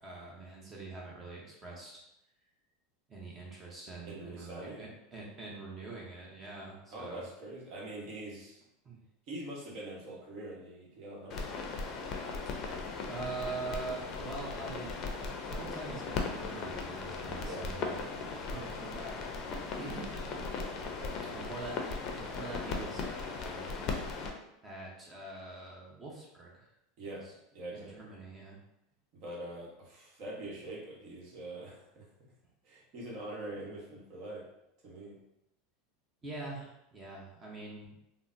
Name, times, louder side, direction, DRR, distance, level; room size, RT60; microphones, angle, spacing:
voice 1, 0.0-2.0 3.1-7.2 8.8-9.0 13.1-14.9 15.2-19.2 19.8-20.5 21.3-23.7 24.6-26.7 27.1-27.3 27.7-28.6 36.2-37.9, right 3 dB, 25° right, -3 dB, 0.8 m, -44 dB
voice 2, 4.0-4.9 6.9-8.6 9.3-11.5 17.4-17.6 21.0-21.4 27.0-27.2 27.5-28.2 29.1-32.1 32.6-34.4 34.8-35.2, right 1 dB, 55° right, -3 dB, 1.0 m, -44 dB
sound 1, 11.3-24.3, left 4 dB, 45° left, 0.5 m, -38 dB
3.7 x 2.0 x 2.6 m, 0.83 s
supercardioid pair, 120°, 0 cm